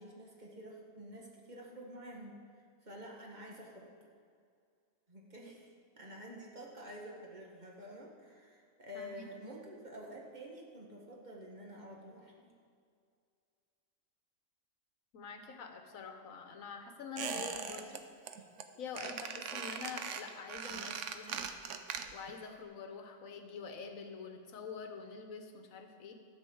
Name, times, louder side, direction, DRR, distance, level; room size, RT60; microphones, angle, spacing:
voice 1, 0.0-2.4 2.8-3.9 5.1-12.5, equal, 35° right, -2 dB, 1.6 m, -49 dB
voice 2, 8.9-9.3 15.1-18.0 18.8-21.4 22.1-26.1, left 5 dB, 85° left, 5 dB, 1.4 m, -46 dB
Squeak, 17.2-18.0 18.3-18.6 18.9-22.4 22.6-22.7, right 7 dB, 70° right, 1.0 m, -40 dB
12.5 x 5.4 x 7.1 m, 2.2 s
omnidirectional pair, 1.4 m